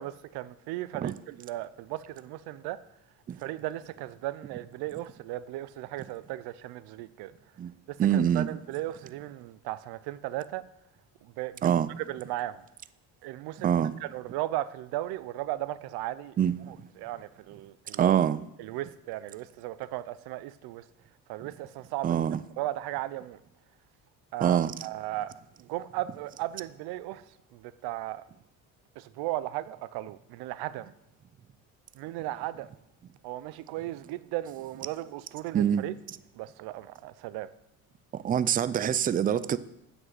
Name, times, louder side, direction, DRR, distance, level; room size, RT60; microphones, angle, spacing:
voice 1, 0.0-2.8 3.4-7.3 7.9-10.6 11.2-12.6 13.2-16.4 16.7-18.2 18.6-20.8 21.3-22.2 22.6-23.4 24.3-25.3 25.6-27.2 27.5-28.2 29.0-30.9 31.9-32.7 33.2-35.9 36.3-37.5, right 15 dB, 80° right, 0.7 m, -36 dB
voice 2, 8.0-8.5 11.6-11.9 13.6-13.9 16.4-16.5 18.0-18.4 22.0-22.4 24.4-24.7 35.5-35.8 38.1-39.6, right 9 dB, 25° right, 0.4 m, -24 dB
8.1 x 6.2 x 7.6 m
cardioid pair, 115°, 38 cm